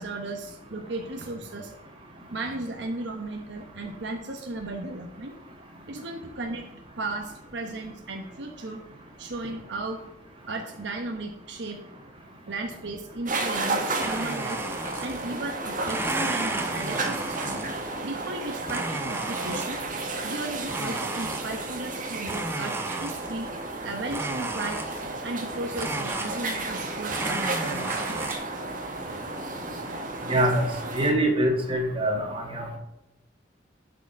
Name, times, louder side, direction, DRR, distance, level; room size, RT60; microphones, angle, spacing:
voice 1, 0.0-1.7 2.3-5.3 5.9-6.7 7.0-8.8 9.2-10.0 10.5-11.8 12.5-14.6 15.0-17.6 18.0-19.9 20.2-23.5 23.8-24.8 25.2-28.0, right 2 dB, 70° right, 2 dB, 1.1 m, -35 dB
sound 1, 13.3-31.1, right 2 dB, 45° right, 1.6 m, -33 dB
Domestic sounds home sounds, 14.0-15.4 15.8-17.9 18.7-20.0 20.7-21.8 22.3-23.5 24.1-25.2 25.8-26.8 27.1-28.3, right 2 dB, 15° right, 0.6 m, -33 dB
voice 2, 30.3-30.6 30.9-32.8, right 1 dB, 30° right, 1 dB, 2.0 m, -24 dB
11.5 x 5.0 x 4.7 m, 0.90 s
head